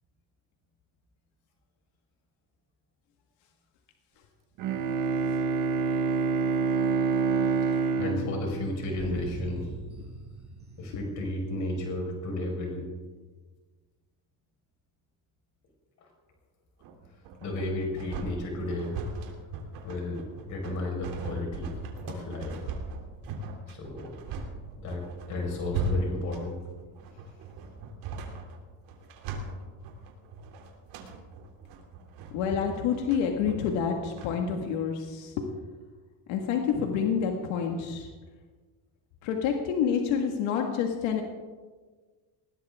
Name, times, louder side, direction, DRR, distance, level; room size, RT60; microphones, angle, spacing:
Bowed string instrument, 4.6-9.5, right 5 dB, 45° right, 1.3 m, -27 dB
voice 1, 8.0-9.7 10.8-12.8 16.0-16.1 17.4-19.0 19.8-21.7 22.0-22.6 23.7-24.1 24.8-26.6, left 1 dB, 40° left, 0 dB, 5.1 m, -33 dB
sound 1, 9.0-11.7, right 2 dB, 20° right, 2.1 m, -42 dB
sound 2, 16.8-34.3, right 3 dB, 70° right, 3.2 m, -38 dB
voice 2, 32.3-35.5 36.3-38.1 39.2-41.2, left 7 dB, 85° left, 2 dB, 2.0 m, -28 dB
20.5 x 18.5 x 3.7 m, 1.4 s
cardioid pair, 180°, 45 cm